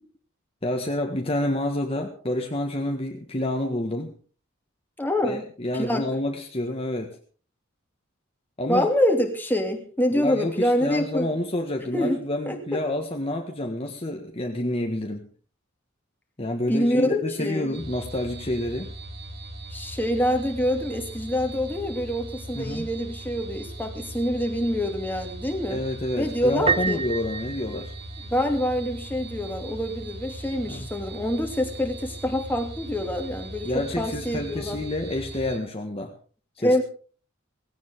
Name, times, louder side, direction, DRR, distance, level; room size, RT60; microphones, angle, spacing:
voice 1, 0.6-4.1 5.2-7.2 8.6-8.9 10.1-15.3 16.4-18.9 22.5-22.9 25.7-27.9 30.7-30.9 33.6-36.1 36.6-36.8, left 1 dB, 30° left, 2 dB, 1.7 m, -28 dB
voice 2, 5.0-5.5 5.7-6.1 8.7-11.3 11.9-12.2 12.5-12.8 16.7-17.8 19.7-25.8 26.2-27.0 28.2-34.8 36.6-36.8, left 1 dB, 10° left, 3 dB, 2.8 m, -26 dB
sound 1, 17.7-35.6, right 2 dB, 50° right, 2.7 m, -39 dB
Piano, 26.7-28.5, right 5 dB, 25° right, 0.8 m, -28 dB
18.0 x 17.0 x 3.6 m, 0.41 s
head